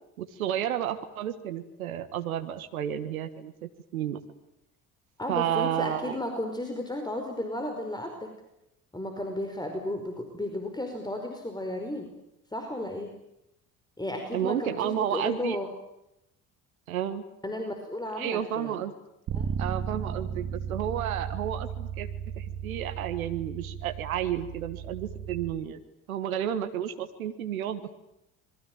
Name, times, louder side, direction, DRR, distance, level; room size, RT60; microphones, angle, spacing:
voice 1, 0.2-4.2 5.3-6.2 14.3-15.6 16.9-17.2 18.2-18.9 19.6-22.1 22.3-25.8 26.1-27.9, right 10 dB, 80° right, 9 dB, 1.6 m, -31 dB
voice 2, 5.2-8.3 8.9-12.1 12.5-13.1 14.0-15.7 17.4-18.8 19.3-19.5, left 1 dB, 10° left, 5 dB, 4.9 m, -34 dB
Bass guitar, 19.3-25.5, right 7 dB, 50° right, 2.5 m, -35 dB
27.0 x 22.0 x 9.1 m, 0.85 s
hypercardioid pair, 55°, 42 cm